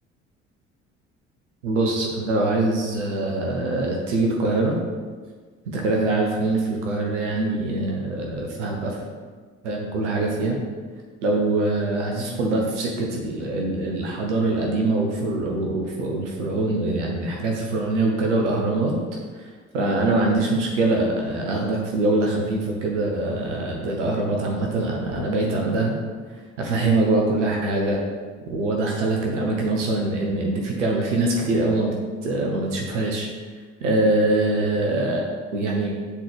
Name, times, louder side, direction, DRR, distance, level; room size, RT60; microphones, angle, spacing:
voice 1, 1.6-4.8 5.7-9.0 9.6-10.6 11.2-18.9 19.3-25.9 26.6-28.0 28.5-31.9 32.2-33.3 33.8-35.2 35.5-36.0, right 2 dB, 75° right, 0 dB, 0.9 m, -23 dB
8.6 x 3.9 x 3.3 m, 1.5 s
figure-of-eight pair, 55°, 36 cm